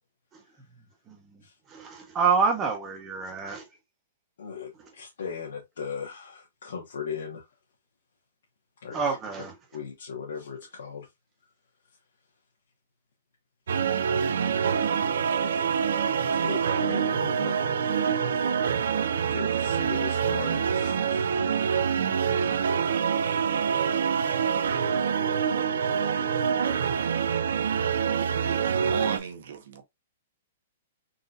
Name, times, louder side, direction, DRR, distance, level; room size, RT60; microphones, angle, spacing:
voice 1, 1.1-3.7 4.8-4.9 8.9-9.6, right 5 dB, 15° right, 0.8 m, -28 dB
voice 2, 4.4-7.4 8.8-9.0 9.7-11.1 16.3-17.6 18.3-18.6 19.3-21.3 22.9-23.0, left 6 dB, 85° left, 1.2 m, -38 dB
sound 1, 13.7-29.2, right 7 dB, 75° right, 0.4 m, -26 dB
voice 3, 28.2-29.8, right 7 dB, 50° right, 0.9 m, -35 dB
4.0 x 2.6 x 2.5 m
hypercardioid pair, 180°, 0 cm